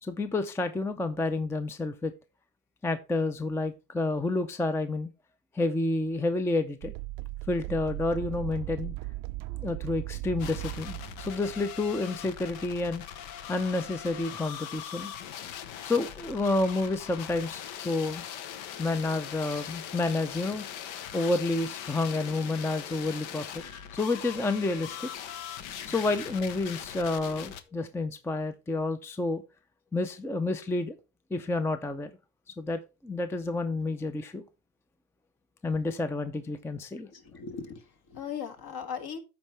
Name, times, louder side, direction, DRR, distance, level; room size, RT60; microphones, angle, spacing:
voice 1, 0.0-2.1 2.8-5.1 5.5-6.9 7.5-8.9 9.5-13.0 13.5-15.1 15.8-18.2 18.8-20.6 21.1-23.6 23.9-25.1 25.9-29.4 29.9-31.0 31.3-32.1 32.6-34.4 35.6-37.1, left 2 dB, 5° left, 0.4 m, -29 dB
sound 1, 6.8-12.5, right 19 dB, 65° right, 0.5 m, -38 dB
sound 2, 10.4-27.6, left 9 dB, 70° left, 1.0 m, -41 dB
voice 2, 37.1-39.2, left 7 dB, 50° left, 1.7 m, -38 dB
13.0 x 4.6 x 3.3 m
supercardioid pair, 105°, 48 cm